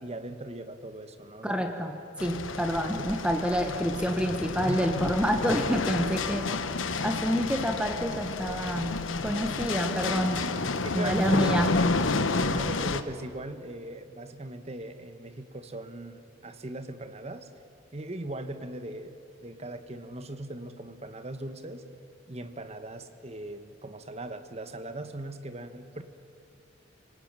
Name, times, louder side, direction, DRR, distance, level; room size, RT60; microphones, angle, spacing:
voice 1, 0.0-1.7 2.9-3.1 4.7-4.8 10.8-11.5 12.4-17.5 17.9-21.8 22.3-26.0, right 1 dB, 35° right, 9 dB, 1.3 m, -39 dB
voice 2, 1.4-6.6 7.0-10.5 10.9-11.7, equal, 5° right, 5 dB, 1.2 m, -28 dB
sound 1, 2.2-13.0, left 3 dB, 85° left, 1.1 m, -30 dB
27.0 x 18.5 x 8.9 m, 2.7 s
head